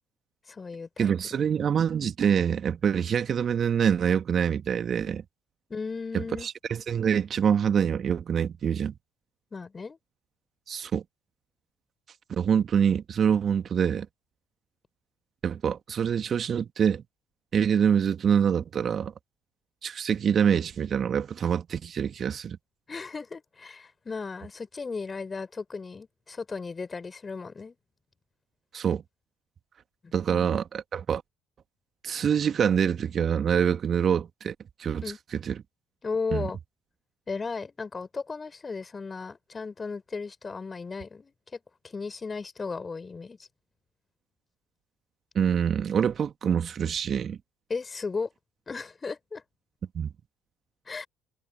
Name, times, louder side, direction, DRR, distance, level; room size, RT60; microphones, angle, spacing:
voice 1, 0.5-1.4 5.7-6.5 9.5-10.0 22.9-27.8 30.0-30.5 35.0-35.2 36.0-36.6 37.3-41.6 41.8-43.5 47.7-48.3 48.7-49.4 50.9-51.1, left 4 dB, 30° left, 6.2 m, -35 dB
voice 2, 1.0-5.2 6.1-8.9 10.7-11.0 12.3-14.1 15.4-17.0 17.5-19.1 19.8-22.6 28.7-29.0 30.1-31.2 32.0-35.0 35.3-35.6 36.3-36.5 45.4-47.4 50.0-50.1, right 7 dB, 45° right, 1.9 m, -25 dB
hypercardioid pair, 55°, 0 cm